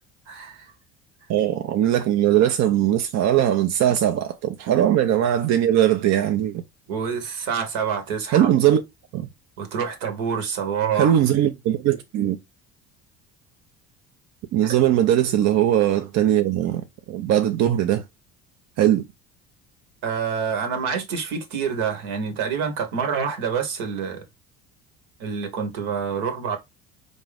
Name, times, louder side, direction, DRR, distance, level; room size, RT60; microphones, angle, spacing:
voice 1, 0.3-0.7 6.9-8.5 9.6-11.1 14.6-14.7 20.0-24.2 25.2-26.6, right 6 dB, 70° right, 1.2 m, -27 dB
voice 2, 1.3-6.6 8.3-8.8 9.1-9.3 11.0-12.4 14.5-18.0 18.8-19.0, right 11 dB, 50° right, 0.6 m, -20 dB
4.4 x 2.7 x 3.3 m
hypercardioid pair, 75°, 36 cm